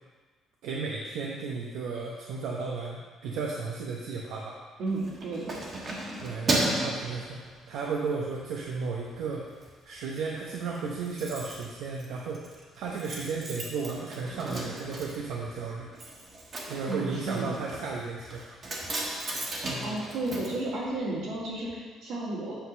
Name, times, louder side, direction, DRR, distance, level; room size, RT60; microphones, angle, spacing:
voice 1, 0.6-4.6 6.2-9.4 9.8-15.9 16.7-18.6, right 4 dB, 85° right, -2 dB, 0.9 m, -34 dB
voice 2, 4.8-5.6 16.9-17.5 19.8-22.5, right 2 dB, 70° right, -5 dB, 2.3 m, -33 dB
Keys jangling, 4.9-8.0 8.4-8.6 9.0-9.7 10.0-10.1 10.3-10.4 10.6-21.4 21.7-21.8, right 2 dB, 30° right, 1.3 m, -35 dB
8.6 x 3.8 x 6.3 m, 1.4 s
cardioid pair, 145°, 0 cm